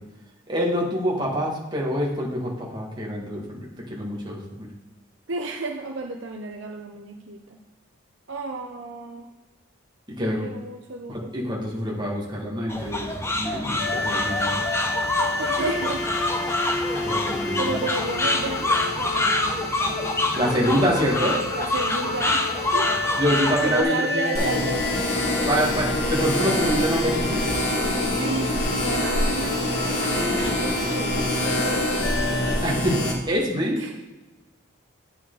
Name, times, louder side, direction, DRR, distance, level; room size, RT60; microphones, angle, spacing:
voice 1, 0.5-4.7 10.2-10.5 11.1-14.6 17.0-17.7 20.4-21.4 23.2-24.6 25.5-27.4 32.6-33.0 33.3-33.8, equal, 20° right, -3 dB, 1.9 m, -26 dB
voice 2, 5.3-7.4 8.3-9.3 10.4-11.6 15.4-16.0 17.6-20.6 21.5-22.9 23.6-24.9 26.6-26.8 28.2-32.2 33.7-34.0, right 3 dB, 65° right, 2 dB, 0.7 m, -32 dB
sound 1, 12.7-23.8, left 2 dB, 15° left, 0.6 m, -26 dB
sound 2, 13.8-32.6, left 3 dB, 55° left, 1.2 m, -30 dB
sound 3, 24.3-33.1, left 1 dB, 90° left, 2.2 m, -25 dB
9.2 x 6.0 x 4.0 m, 1.1 s
head